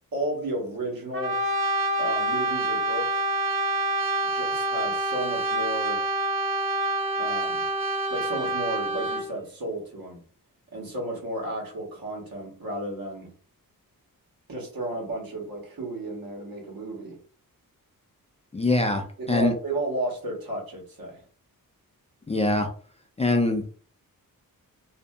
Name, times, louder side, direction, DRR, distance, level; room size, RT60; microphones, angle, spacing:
voice 1, 0.1-1.4 2.0-3.2 4.3-6.0 7.2-7.6 8.1-10.2 10.7-13.3 14.5-17.2 19.2-21.2, right 1 dB, 75° right, -2 dB, 1.2 m, -33 dB
Brass instrument, 1.1-9.3, right 2 dB, 35° right, 0.7 m, -27 dB
voice 2, 18.5-19.5 22.3-22.7 23.2-23.7, left 2 dB, 20° left, 3 dB, 0.3 m, -23 dB
2.6 x 2.5 x 2.3 m, 0.42 s
wide cardioid pair, 125°, 35 cm